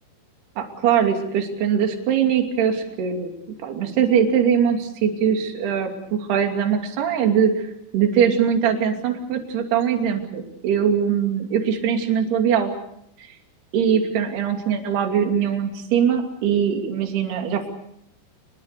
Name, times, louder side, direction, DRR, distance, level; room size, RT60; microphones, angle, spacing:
voice 1, 0.6-3.3 3.6-7.7 7.9-12.7 13.7-17.7, right 8 dB, 60° right, 4 dB, 4.5 m, -21 dB
29.0 x 21.0 x 6.8 m, 0.75 s
omnidirectional pair, 5.7 m